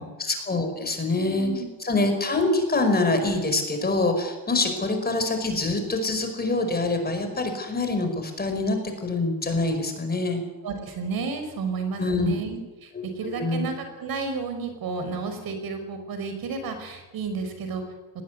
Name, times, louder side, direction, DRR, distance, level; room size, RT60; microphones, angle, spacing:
voice 1, 0.2-1.5 1.8-10.4 12.0-12.4 12.9-13.7, left 2 dB, 20° left, 6 dB, 5.1 m, -25 dB
voice 2, 1.1-1.7 10.6-17.8, right 4 dB, 55° right, 8 dB, 5.4 m, -32 dB
20.0 x 18.5 x 9.6 m, 1.1 s
cardioid pair, 125°, 42 cm